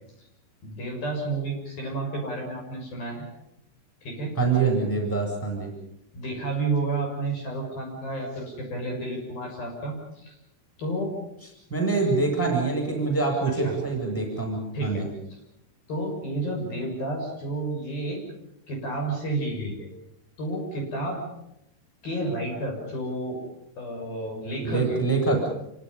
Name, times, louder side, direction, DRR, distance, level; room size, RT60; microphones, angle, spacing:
voice 1, 0.6-3.2 4.0-4.4 6.1-10.4 10.8-11.1 13.5-13.8 14.7-15.1 15.9-18.2 18.7-19.9 20.4-21.2 22.0-23.4 23.8-25.0, right 2 dB, 50° left, 1 dB, 8.2 m, -31 dB
voice 2, 4.4-5.7 11.7-15.1 24.6-25.4, right 4 dB, 5° left, 1 dB, 7.5 m, -25 dB
28.5 x 25.0 x 5.7 m, 0.82 s
omnidirectional pair, 5.5 m